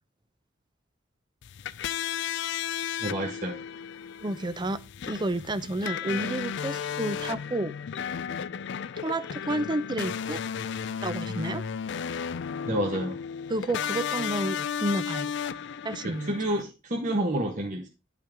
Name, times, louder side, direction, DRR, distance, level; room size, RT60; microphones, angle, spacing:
sound 1, 1.4-16.6, left 8 dB, 65° left, 0.4 m, -34 dB
voice 1, 3.0-3.6 12.6-13.2 16.0-17.9, right 1 dB, 40° right, 1 dB, 1.3 m, -29 dB
voice 2, 4.2-4.8 5.1-7.7 9.0-10.4 11.0-11.6 13.5-15.6 15.8-16.3, right 1 dB, 25° right, 13 dB, 0.6 m, -30 dB
10.5 x 5.8 x 3.6 m, 0.28 s
head